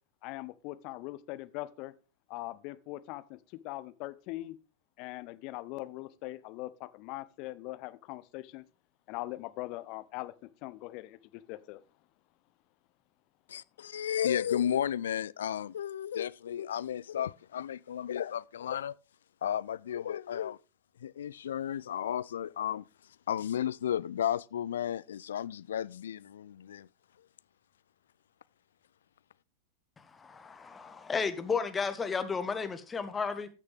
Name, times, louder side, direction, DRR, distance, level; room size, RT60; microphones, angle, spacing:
voice 1, 0.2-1.9 2.3-3.4 3.6-4.6 5.0-8.6 9.1-10.3 10.6-11.8 14.3-14.7, left 18 dB, 45° left, 0.8 m, -41 dB
voice 2, 13.5-18.9 19.4-20.6 21.0-22.8 23.3-26.9, left 10 dB, 65° left, 0.4 m, -33 dB
voice 3, 30.2-33.5, left 5 dB, 15° left, 1.2 m, -33 dB
14.5 x 6.6 x 3.5 m
figure-of-eight pair, 90°, 0 cm